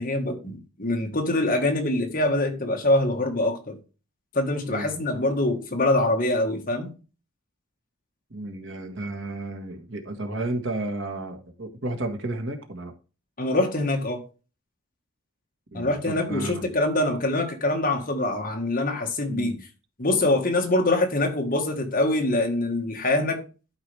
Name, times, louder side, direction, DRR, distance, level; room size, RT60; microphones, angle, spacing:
voice 1, 0.0-3.8 4.3-6.9 13.4-14.2 15.7-19.5 20.0-23.4, left 2 dB, 40° left, 1.7 m, -24 dB
voice 2, 4.7-5.0 8.3-12.9 15.7-16.7 19.3-19.6, right 2 dB, 60° right, 1.5 m, -32 dB
12.0 x 4.9 x 3.4 m
head